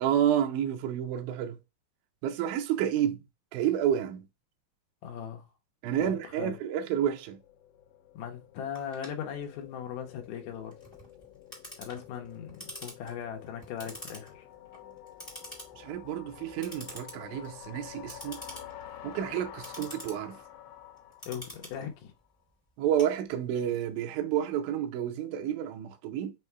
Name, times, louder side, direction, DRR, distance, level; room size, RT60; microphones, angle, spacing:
voice 1, 0.0-1.6 2.2-3.2 3.5-4.3 5.8-7.4 15.8-18.4 19.0-20.4 22.8-26.3, right 10 dB, 75° right, 2.0 m, -30 dB
voice 2, 5.0-5.5 6.0-6.5 8.1-10.8 11.8-14.5 21.3-22.1, left 8 dB, 70° left, 1.8 m, -39 dB
sound 1, 6.8-22.0, left 11 dB, 85° left, 2.5 m, -49 dB
Clock, 8.7-23.7, equal, 15° left, 0.9 m, -48 dB
5.5 x 2.1 x 4.5 m
omnidirectional pair, 4.0 m